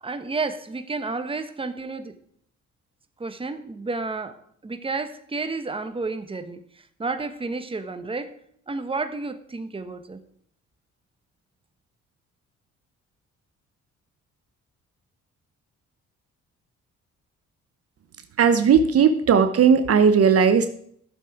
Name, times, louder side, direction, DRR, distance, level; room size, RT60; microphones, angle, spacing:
voice 1, 0.0-2.1 3.2-4.4 4.6-6.6 7.0-8.3 8.7-10.2, right 3 dB, 20° right, 9 dB, 1.1 m, -31 dB
voice 2, 18.4-20.7, right 6 dB, 50° right, 10 dB, 0.8 m, -17 dB
13.0 x 6.9 x 4.9 m, 0.65 s
cardioid pair, 90°, 30 cm